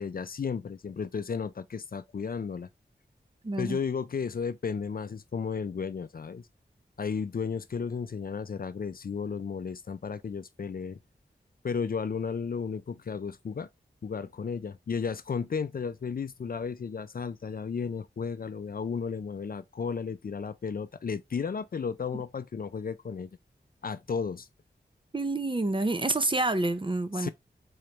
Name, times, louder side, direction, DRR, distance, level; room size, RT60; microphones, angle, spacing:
voice 1, 0.0-2.7 3.6-6.5 7.0-11.0 11.6-13.7 14.0-23.3 23.8-24.5 27.2-27.3, left 6 dB, 50° left, 0.4 m, -33 dB
voice 2, 3.4-3.8 25.1-27.3, right 2 dB, 25° right, 0.5 m, -28 dB
3.9 x 3.2 x 3.1 m
wide cardioid pair, 60°, 19 cm